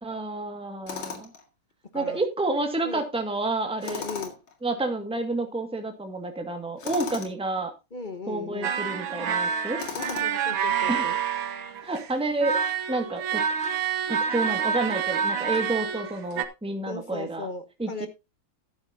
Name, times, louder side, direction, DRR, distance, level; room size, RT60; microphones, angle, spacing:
voice 1, 0.0-1.3 1.9-4.0 4.6-7.7 8.3-9.8 10.9-11.0 11.8-12.6 12.9-13.4 14.1-17.5 17.8-18.1, right 2 dB, 5° right, 5 dB, 1.7 m, -29 dB
Tools, 0.9-1.4 3.8-4.5 6.8-7.4 9.8-10.5, left 6 dB, 80° left, 2.8 m, -36 dB
voice 2, 3.8-4.3 7.9-8.7 9.9-11.2 16.9-18.1, left 3 dB, 35° left, 10 dB, 0.8 m, -37 dB
sound 1, 8.6-12.1 12.4-16.4, right 7 dB, 80° right, 1.9 m, -28 dB
13.5 x 10.5 x 2.7 m, 0.26 s
omnidirectional pair, 2.2 m